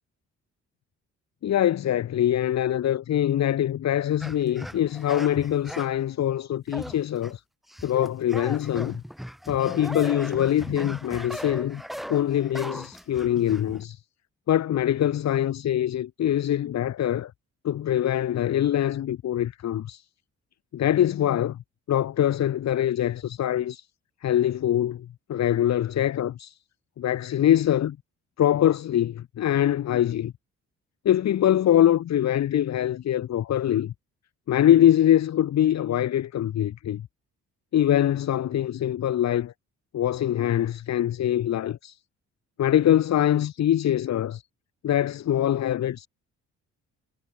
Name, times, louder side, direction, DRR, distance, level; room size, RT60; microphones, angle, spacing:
voice 1, 1.4-7.4 7.8-9.0 9.5-11.8 12.1-14.0 14.5-17.3 17.6-20.0 20.7-21.6 21.9-23.9 24.2-26.6 27.0-28.0 28.4-30.3 31.0-33.9 34.5-37.1 37.7-39.5 39.9-42.0 42.6-44.4 44.8-46.1, left 11 dB, 60° left, 1.4 m, -23 dB
sound 1, 4.2-6.0 6.7-7.3 7.7-13.8, equal, ahead, 5.4 m, -38 dB
cardioid pair, 90°, 30 cm